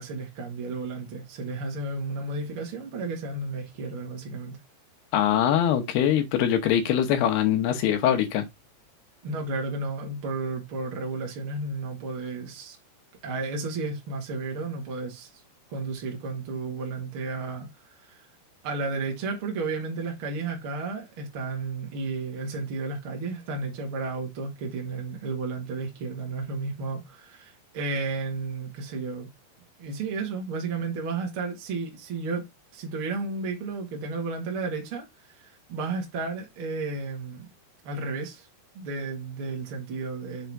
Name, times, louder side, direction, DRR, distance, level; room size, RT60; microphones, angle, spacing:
voice 1, 0.0-4.6 9.2-12.8 13.2-15.4 15.7-18.3 18.6-29.3 29.8-32.5 32.7-37.5 37.8-38.5 38.7-40.5, right 3 dB, 55° right, 1.5 m, -33 dB
voice 2, 5.1-8.4, left 10 dB, 75° left, 3.0 m, -23 dB
7.0 x 3.8 x 4.6 m
omnidirectional pair, 5.0 m